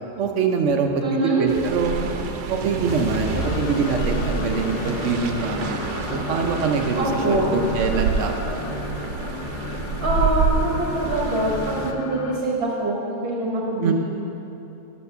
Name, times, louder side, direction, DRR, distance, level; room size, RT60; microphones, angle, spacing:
voice 1, 0.2-1.0 1.4-1.9 2.5-8.6 13.8-13.9, right 5 dB, 60° right, 4 dB, 0.8 m, -24 dB
voice 2, 1.0-1.5 6.9-7.5 10.0-13.9, right 2 dB, 40° right, -4 dB, 1.3 m, -24 dB
sound 1, 1.5-11.9, right 5 dB, 85° right, 1.3 m, -28 dB
sound 2, 2.3-5.9, left 2 dB, 55° left, 0.7 m, -34 dB
sound 3, 3.4-12.4, left 6 dB, 75° left, 1.0 m, -34 dB
7.3 x 6.8 x 6.7 m, 2.9 s
omnidirectional pair, 1.9 m